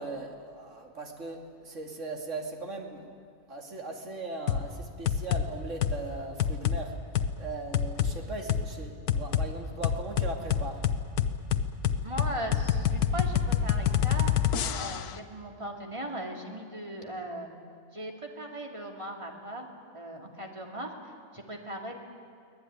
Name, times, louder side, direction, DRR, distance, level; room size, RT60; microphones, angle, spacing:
voice 1, 0.0-3.1 3.5-6.9 7.4-10.8, right 2 dB, 55° right, 2 dB, 2.8 m, -39 dB
sound 1, 4.5-4.7 5.1-5.5 5.8-6.0 6.4-6.8 7.2-7.3 7.7-8.1 8.5-8.6 9.1-9.5 9.8-15.1, left 9 dB, 90° left, 1.4 m, -26 dB
voice 2, 12.0-14.3 14.8-17.5 17.9-21.9, right 1 dB, 20° right, 1 dB, 2.7 m, -38 dB
24.0 x 18.5 x 9.6 m, 2.3 s
omnidirectional pair, 1.5 m